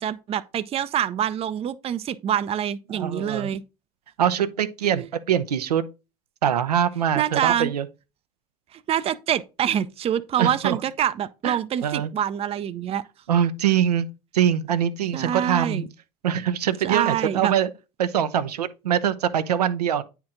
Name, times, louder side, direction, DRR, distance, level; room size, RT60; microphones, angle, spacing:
voice 1, 0.0-3.6 5.0-5.1 7.2-7.7 8.7-13.0 15.1-15.9 16.8-17.5, right 10 dB, 30° right, 0.5 m, -26 dB
voice 2, 2.9-3.5 4.2-5.8 6.4-7.9 10.4-10.8 11.4-12.1 13.3-14.1 14.3-15.9 16.2-17.7 18.0-20.0, right 9 dB, 80° right, 0.7 m, -23 dB
9.4 x 4.5 x 3.8 m
hypercardioid pair, 75°, 20 cm